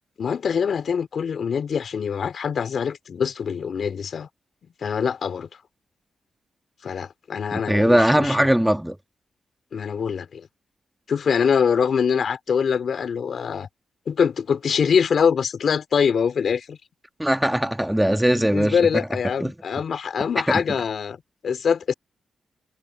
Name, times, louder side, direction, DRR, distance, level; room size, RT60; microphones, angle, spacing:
voice 1, 0.2-4.3 4.8-5.5 6.8-8.5 9.7-10.5 11.1-13.7 14.1-16.8 18.3-21.9, left 6 dB, 65° left, 2.9 m, -24 dB
voice 2, 7.5-9.0 17.2-18.8 19.4-19.5, right 1 dB, 5° right, 1.9 m, -20 dB
cardioid pair, 65°, 0 cm